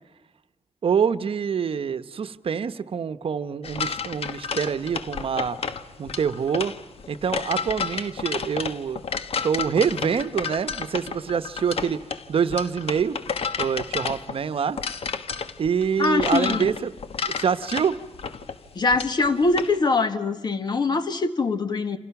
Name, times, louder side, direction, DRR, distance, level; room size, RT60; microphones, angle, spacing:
voice 1, 0.8-5.6 6.0-6.7 7.1-9.0 9.4-12.0 12.3-13.2 13.6-14.8 15.6-16.9 17.4-18.0, right 7 dB, 60° right, 12 dB, 1.0 m, -25 dB
sound 1, 3.6-19.7, left 6 dB, 65° left, 1.3 m, -31 dB
voice 2, 16.0-16.7 18.8-22.0, left 3 dB, 40° left, 9 dB, 1.8 m, -23 dB
28.5 x 26.5 x 6.0 m, 0.95 s
wide cardioid pair, 115°, 11 cm